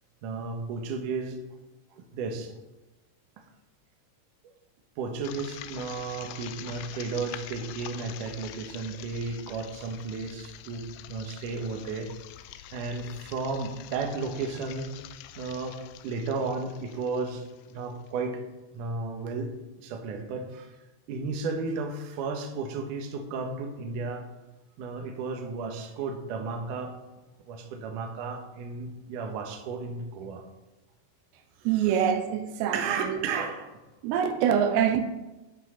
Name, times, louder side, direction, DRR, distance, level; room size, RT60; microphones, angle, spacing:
voice 1, 0.2-1.4 2.0-2.5 5.0-12.1 12.7-14.9 15.4-15.8 16.0-18.4 18.7-19.5 19.8-20.7 21.1-24.2 24.8-27.0 27.5-30.4 31.6-32.0 32.7-33.7, right 4 dB, 65° right, 2.4 m, -33 dB
sound 1, 5.2-18.1, left 12 dB, 85° left, 2.7 m, -45 dB
voice 2, 31.6-33.3 34.0-35.0, right 8 dB, 90° right, 2.9 m, -25 dB
11.5 x 5.7 x 5.5 m
omnidirectional pair, 4.8 m